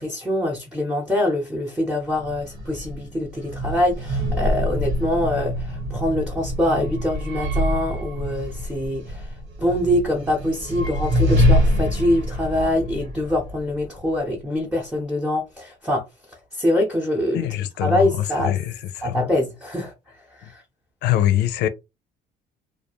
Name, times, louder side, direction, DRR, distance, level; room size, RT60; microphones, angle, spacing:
voice 1, 0.0-16.0 16.5-17.5 17.8-18.6 19.0-19.9 20.4-20.6, left 1 dB, 5° right, 0.7 m, -24 dB
sound 1, 2.0-14.2, equal, 80° right, 1.4 m, -25 dB
voice 2, 17.3-19.3 21.0-21.7, left 12 dB, 80° left, 0.4 m, -23 dB
2.4 x 2.1 x 2.9 m
cardioid pair, 110°, 17 cm